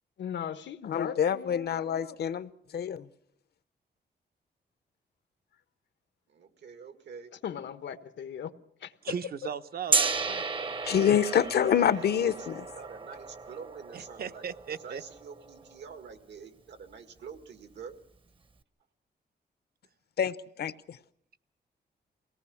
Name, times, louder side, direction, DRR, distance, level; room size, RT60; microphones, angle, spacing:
voice 1, 0.2-2.2 7.4-8.5 8.8-9.2, left 8 dB, 90° left, 1.1 m, -38 dB
voice 2, 0.8-3.1 10.8-12.6 20.2-21.0, left 9 dB, 65° left, 0.7 m, -27 dB
voice 3, 6.3-7.3 10.5-18.0, right 6 dB, 85° right, 2.0 m, -47 dB
voice 4, 9.0-10.5 13.9-15.0, right 7 dB, 60° right, 0.8 m, -37 dB
Gong, 9.9-15.8, right 4 dB, 30° right, 0.7 m, -33 dB
24.0 x 18.0 x 7.0 m
wide cardioid pair, 170°, 18 cm